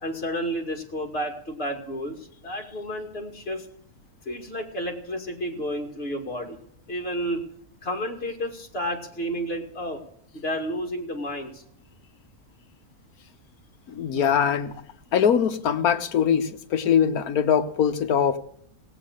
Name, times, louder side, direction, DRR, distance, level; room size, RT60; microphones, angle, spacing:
voice 1, 0.0-3.6 4.3-6.6 6.9-7.4 7.8-10.0 10.3-11.6, equal, 45° left, 3 dB, 2.6 m, -31 dB
voice 2, 13.9-14.7 15.1-18.4, left 8 dB, 80° left, 10 dB, 1.5 m, -22 dB
18.0 x 8.4 x 6.5 m, 0.68 s
omnidirectional pair, 1.5 m